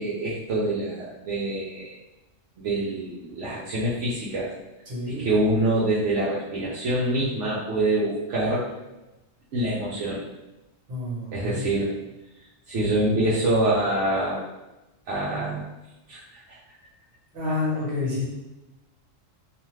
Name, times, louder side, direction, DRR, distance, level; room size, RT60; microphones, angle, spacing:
voice 1, 0.0-1.9 2.6-4.5 5.0-8.7 9.5-10.2 11.3-11.9 12.7-14.4 15.1-15.6 16.1-16.4, right 1 dB, 70° right, -7 dB, 0.9 m, -25 dB
voice 2, 4.9-5.2 10.9-11.7 17.3-18.2, left 2 dB, 50° right, -6 dB, 1.3 m, -28 dB
2.5 x 2.4 x 3.1 m, 1.0 s
omnidirectional pair, 1.3 m